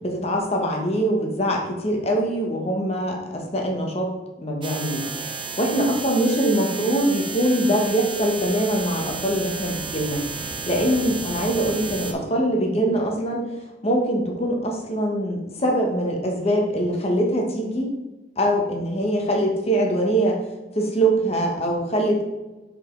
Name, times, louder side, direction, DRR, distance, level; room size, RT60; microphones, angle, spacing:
voice 1, 0.0-4.1 4.4-5.0 5.3-13.5 13.8-17.9 18.4-20.4 20.7-22.2, right 1 dB, 35° left, 0 dB, 1.1 m, -23 dB
sound 1, 4.6-12.1, right 4 dB, 25° right, 0.5 m, -33 dB
5.5 x 5.0 x 3.8 m, 1.1 s
head